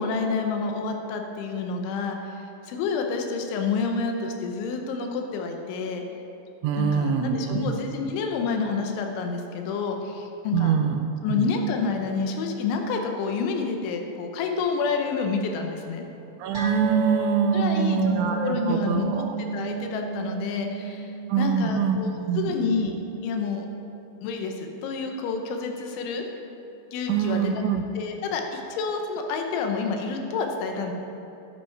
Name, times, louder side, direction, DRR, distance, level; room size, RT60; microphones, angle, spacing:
voice 1, 0.0-6.0 6.8-10.8 11.2-16.0 17.5-18.1 18.4-22.1 22.3-22.9 23.2-23.7 24.2-26.3 26.9-27.5 28.0-30.9, left 4 dB, 80° left, 4 dB, 3.2 m, -29 dB
voice 2, 6.6-7.8 10.5-11.0 11.3-11.5 16.4-19.4 21.3-22.5 27.1-27.8, right 7 dB, 80° right, 6 dB, 2.8 m, -25 dB
sound 1, 16.5-23.3 23.6-23.8 24.2-24.3, right 5 dB, 25° right, 1.4 m, -30 dB
11.5 x 9.0 x 4.6 m, 2.8 s
omnidirectional pair, 5.5 m